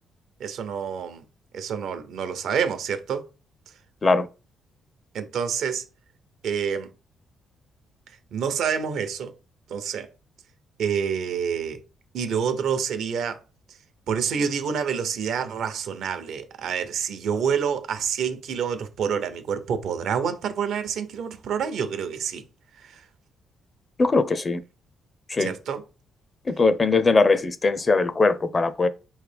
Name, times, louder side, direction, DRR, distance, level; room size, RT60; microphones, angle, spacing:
voice 1, 0.4-1.2 1.5-3.3 5.1-5.8 6.4-6.9 8.3-9.3 9.7-10.1 10.8-11.8 12.1-13.4 14.1-22.4 22.8-23.0 25.4-25.8, right 7 dB, 75° right, 0.7 m, -27 dB
voice 2, 24.0-24.6 25.3-25.5 26.5-28.9, left 3 dB, 30° left, 0.5 m, -20 dB
4.6 x 3.2 x 3.4 m
cardioid pair, 90°, 0 cm